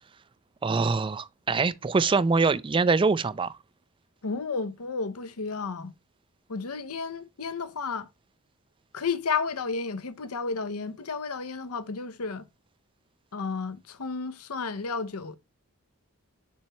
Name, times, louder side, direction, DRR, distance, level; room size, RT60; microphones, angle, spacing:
voice 1, 0.6-3.5, right 4 dB, 25° right, 0.4 m, -24 dB
voice 2, 4.2-5.9 6.5-8.1 8.9-12.5 13.3-15.4, left 4 dB, 90° left, 0.8 m, -32 dB
7.2 x 5.7 x 3.0 m
head